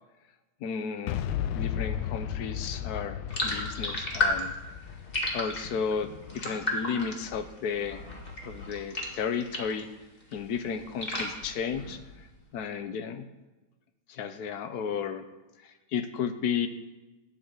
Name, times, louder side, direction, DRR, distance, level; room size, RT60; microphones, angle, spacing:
voice 1, 0.6-1.2 1.5-4.5 5.3-8.1 8.4-9.9 10.3-12.3 12.5-13.2 14.1-15.2 15.6-16.7, left 6 dB, 60° left, 9 dB, 1.2 m, -33 dB
Boom, 1.1-6.9, left 10 dB, 85° left, 1.5 m, -35 dB
sound 1, 3.3-9.9 10.2-12.3, left 2 dB, 25° left, 2.1 m, -34 dB
12.5 x 5.6 x 9.0 m, 1.1 s
omnidirectional pair, 2.3 m